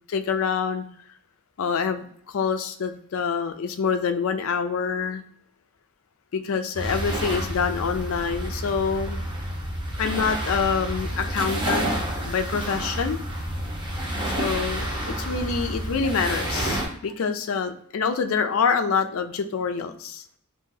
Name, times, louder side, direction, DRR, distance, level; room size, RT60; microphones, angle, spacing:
voice 1, 0.1-0.8 1.6-5.2 6.3-9.2 10.0-11.9 12.2-13.2 14.2-14.9 15.2-20.2, left 6 dB, 75° left, 8 dB, 0.4 m, -26 dB
sound 1, 6.7-16.9, right 1 dB, 25° right, 0.8 m, -29 dB
2.7 x 2.7 x 3.7 m, 0.65 s
head